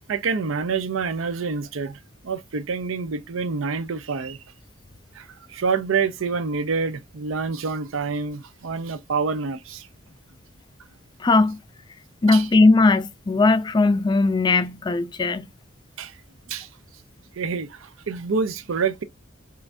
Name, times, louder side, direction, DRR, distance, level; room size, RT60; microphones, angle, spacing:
voice 1, 0.1-2.0 2.2-4.4 5.2-9.9 12.3-12.5 16.0-16.1 16.5-16.7 17.4-19.0, right 5 dB, 85° right, 0.5 m, -27 dB
voice 2, 11.2-11.6 12.2-15.5, left 3 dB, 20° left, 0.3 m, -18 dB
5.6 x 2.3 x 2.6 m
head